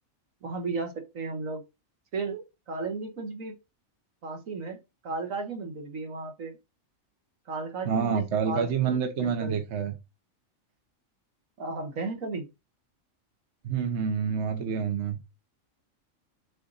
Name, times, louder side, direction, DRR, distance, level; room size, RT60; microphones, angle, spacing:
voice 1, 0.4-1.6 2.1-3.5 4.2-6.6 7.5-9.5 11.6-12.5, right 3 dB, 75° right, 1.8 m, -35 dB
voice 2, 7.9-9.9 13.6-15.2, right 6 dB, 60° right, 1.1 m, -27 dB
6.7 x 4.0 x 3.9 m
omnidirectional pair, 1.4 m